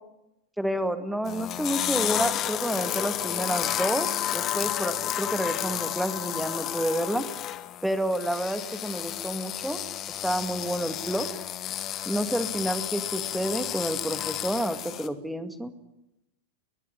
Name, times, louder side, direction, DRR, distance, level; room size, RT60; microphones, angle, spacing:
voice 1, 0.6-7.3 7.8-9.8 10.2-11.3 12.1-15.7, right 1 dB, ahead, 10 dB, 2.2 m, -29 dB
sound 1, 1.3-15.1, left 12 dB, 30° left, 1.6 m, -31 dB
22.0 x 20.5 x 9.8 m, 0.88 s
figure-of-eight pair, 90°, 0 cm